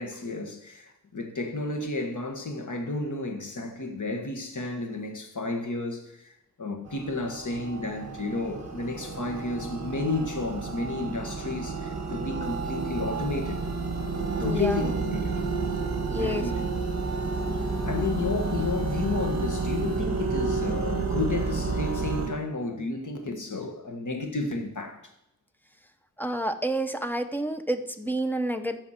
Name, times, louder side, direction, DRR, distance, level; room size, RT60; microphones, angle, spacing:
voice 1, 0.0-13.6 14.4-15.4 16.2-16.6 17.8-25.1, left 3 dB, 50° left, 1.7 m, -32 dB
sound 1, 6.9-22.3, right 4 dB, 45° right, 1.8 m, -30 dB
sound 2, 12.4-20.0, left 1 dB, 75° left, 3.7 m, -52 dB
voice 2, 14.4-14.9 16.1-16.5 26.2-28.8, right 1 dB, 5° left, 0.7 m, -29 dB
15.0 x 6.1 x 4.4 m
wide cardioid pair, 115°, 38 cm